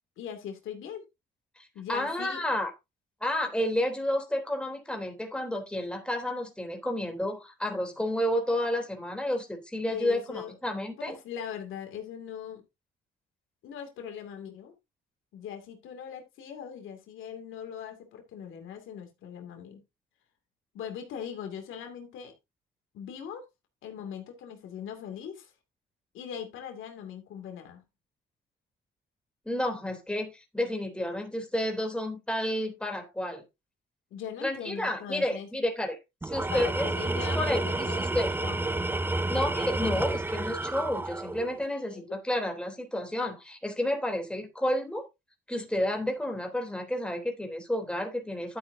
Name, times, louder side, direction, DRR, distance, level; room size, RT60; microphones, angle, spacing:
voice 1, 0.2-1.0 1.7-2.4 9.9-10.5 11.1-12.6 13.6-14.7 15.3-19.8 20.7-22.3 22.9-23.4 23.8-25.5 26.1-27.8 34.1-35.5 36.5-38.6 41.7-42.2, left 8 dB, 85° left, 2.6 m, -40 dB
voice 2, 1.6-2.7 3.2-11.2 29.4-33.4 34.4-36.0 36.2-36.9 37.3-38.3 39.3-45.0 45.5-48.6, left 1 dB, 5° left, 3.4 m, -31 dB
Tools, 36.2-41.6, right 2 dB, 10° right, 0.5 m, -30 dB
12.0 x 8.5 x 2.7 m
cardioid pair, 90°, 20 cm